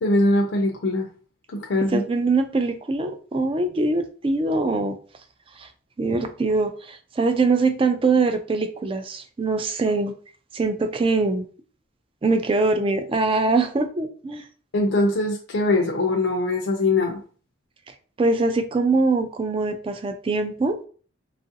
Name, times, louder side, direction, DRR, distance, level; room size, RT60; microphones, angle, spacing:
voice 1, 0.0-1.1 1.5-2.0 14.7-17.2, left 2 dB, 65° left, 0 dB, 0.5 m, -22 dB
voice 2, 1.9-5.0 5.6-5.7 6.0-10.1 10.5-11.5 12.2-14.4 17.9-20.8, right 3 dB, 25° right, 8 dB, 0.3 m, -23 dB
2.9 x 2.4 x 2.7 m, 0.41 s
head